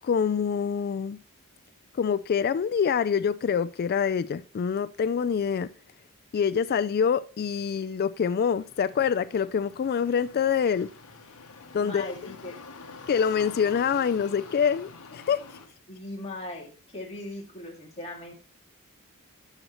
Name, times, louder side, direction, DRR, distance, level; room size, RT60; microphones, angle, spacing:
voice 1, 0.0-1.2 2.0-5.7 6.3-10.9 11.7-12.3 13.1-15.4, left 7 dB, 45° left, 0.3 m, -26 dB
sound 1, 8.4-15.7, left 4 dB, 85° left, 1.1 m, -47 dB
voice 2, 11.8-12.6 15.9-18.3, left 1 dB, 30° left, 2.1 m, -39 dB
11.5 x 6.2 x 3.0 m
head